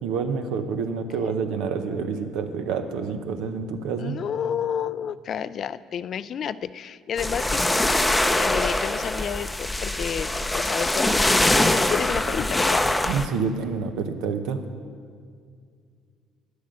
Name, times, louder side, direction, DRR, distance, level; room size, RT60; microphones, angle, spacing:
voice 1, 0.0-4.2 13.1-14.6, right 5 dB, 80° right, 7 dB, 0.8 m, -28 dB
voice 2, 4.0-7.6 8.4-12.9, left 8 dB, 55° left, 16 dB, 0.3 m, -31 dB
sound 1, 7.2-13.3, left 1 dB, 10° left, 0.6 m, -23 dB
10.5 x 8.1 x 6.5 m, 2.1 s
supercardioid pair, 75°, 0 cm